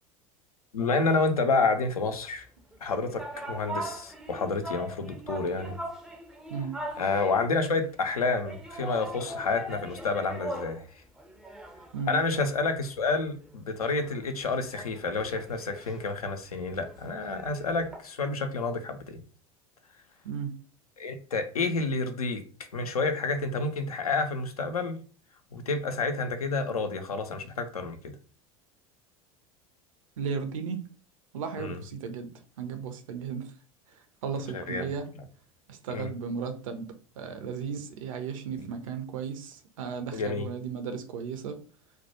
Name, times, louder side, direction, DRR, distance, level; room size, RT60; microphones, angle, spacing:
voice 1, 0.7-2.5 2.8-5.8 7.0-10.9 12.1-19.2 21.0-22.4 22.7-25.0 25.5-28.1 31.6-31.8 34.5-34.9 35.9-36.1 38.6-38.7 40.1-40.5, left 3 dB, 80° left, 0.4 m, -29 dB
sound 1, 2.7-7.6 8.4-10.9 11.2-13.1 13.4-13.5 13.9-18.0, right 1 dB, 5° right, 0.4 m, -40 dB
voice 2, 30.2-30.8 31.3-32.3 32.6-33.5 34.2-35.1 35.7-41.6, right 6 dB, 65° right, 0.5 m, -35 dB
2.2 x 2.0 x 2.8 m
figure-of-eight pair, 75°, 19 cm